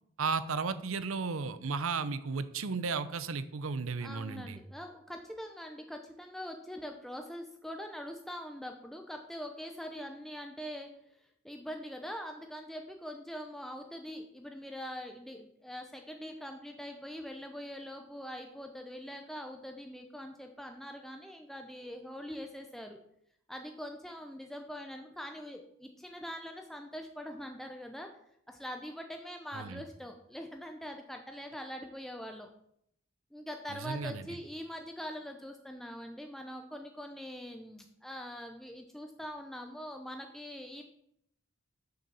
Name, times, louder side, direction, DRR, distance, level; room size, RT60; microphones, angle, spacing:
voice 1, 0.2-4.6 29.5-29.8 33.7-34.3, right 4 dB, 75° right, 14 dB, 0.7 m, -34 dB
voice 2, 4.0-10.9 11.2-23.0 23.5-28.1 28.5-32.5 33.3-40.8, equal, ahead, 4 dB, 0.6 m, -43 dB
6.7 x 6.7 x 6.9 m, 0.73 s
head